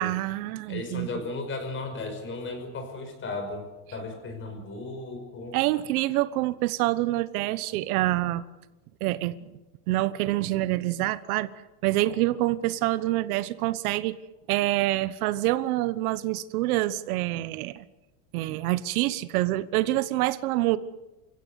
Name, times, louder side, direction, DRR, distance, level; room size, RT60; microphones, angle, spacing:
voice 1, 0.0-1.1 5.5-8.4 9.0-9.5 9.9-11.5 11.8-14.2 14.5-17.8 18.3-20.8, right 16 dB, 70° right, 15 dB, 1.2 m, -26 dB
voice 2, 0.7-3.7 3.9-5.6, left 3 dB, 25° left, 6 dB, 5.7 m, -35 dB
29.0 x 16.0 x 8.2 m, 1.1 s
supercardioid pair, 150°, 45 cm